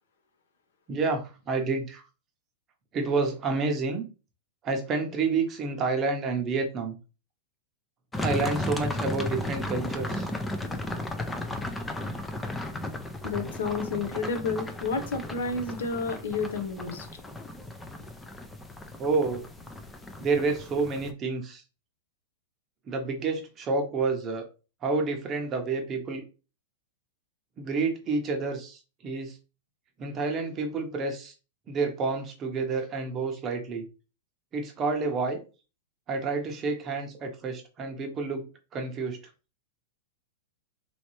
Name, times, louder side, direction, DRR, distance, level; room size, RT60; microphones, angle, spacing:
voice 1, 0.9-2.0 2.9-4.1 4.6-6.9 8.2-10.3 19.0-19.4 20.2-21.6 22.9-24.4 24.8-26.2 27.6-29.3 30.0-31.3 31.7-33.8 34.5-35.4 36.1-38.5 38.7-39.2, right 4 dB, 20° right, 3 dB, 0.8 m, -29 dB
sound 1, 8.1-21.1, left 1 dB, 5° left, 0.4 m, -35 dB
voice 2, 13.2-17.1, left 4 dB, 85° left, 8 dB, 1.0 m, -31 dB
4.1 x 3.2 x 3.1 m, 0.32 s
supercardioid pair, 170°, 0 cm